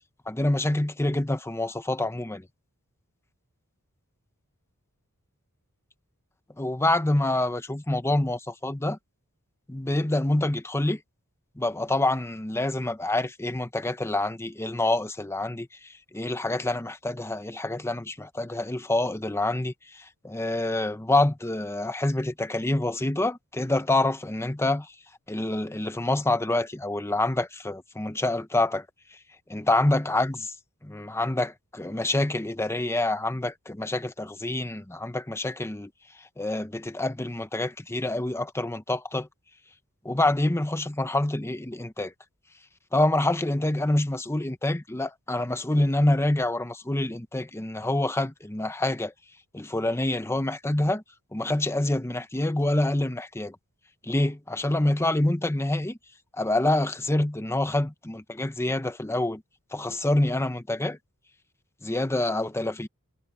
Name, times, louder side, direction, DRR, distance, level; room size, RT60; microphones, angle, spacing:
voice 1, 0.3-2.4 6.6-9.0 9.7-11.0 11.6-15.7 16.1-24.9 25.3-28.8 29.5-30.5 30.8-35.9 36.4-39.3 40.0-42.1 42.9-49.1 49.5-51.0 51.3-53.6 54.1-56.0 56.4-59.4 59.7-61.0 61.8-62.9, left 1 dB, 10° left, 0.8 m, -26 dB
head